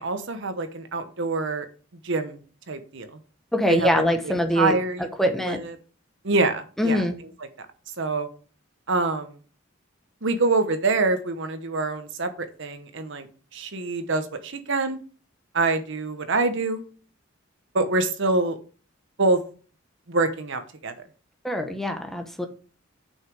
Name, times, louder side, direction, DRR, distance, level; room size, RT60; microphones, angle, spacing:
voice 1, 0.0-1.7 2.0-2.4 2.7-3.2 3.7-3.9 4.6-5.1 5.5-5.7 6.2-7.0 7.6-7.7 8.0-8.3 8.9-9.3 10.2-13.3 13.5-15.0 15.5-16.8 17.7-18.6 19.2-19.4 20.1-20.9, right 3 dB, 65° right, 9 dB, 1.0 m, -25 dB
voice 2, 3.5-4.8 5.2-5.6 6.8-7.2 21.4-22.5, equal, ahead, 5 dB, 0.9 m, -23 dB
6.5 x 5.6 x 4.7 m, 0.39 s
head